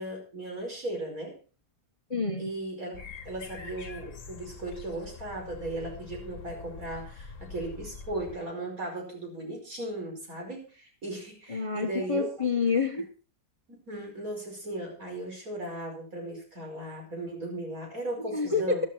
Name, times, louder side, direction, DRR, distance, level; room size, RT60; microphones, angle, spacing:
voice 1, 0.0-1.3 2.4-3.0 3.3-12.3 13.7-18.8, right 1 dB, 60° right, 5.7 m, -37 dB
voice 2, 2.1-2.5 11.5-13.1 18.2-18.9, left 4 dB, 20° left, 1.1 m, -28 dB
sound 1, 2.9-8.4, left 5 dB, 55° left, 1.6 m, -45 dB
13.0 x 13.0 x 4.5 m
omnidirectional pair, 1.7 m